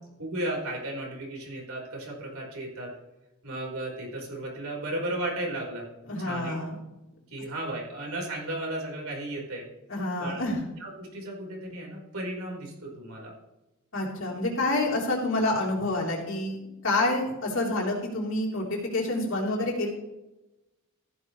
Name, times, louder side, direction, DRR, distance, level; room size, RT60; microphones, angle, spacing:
voice 1, 0.2-2.9 3.4-5.9 6.2-6.6 7.3-9.6 10.2-10.4 10.8-13.3, right 1 dB, 90° right, -3 dB, 4.8 m, -34 dB
voice 2, 6.1-6.8 9.9-10.6 13.9-16.6 16.8-19.9, left 2 dB, 65° left, -2 dB, 4.0 m, -28 dB
15.0 x 12.0 x 3.3 m, 0.99 s
head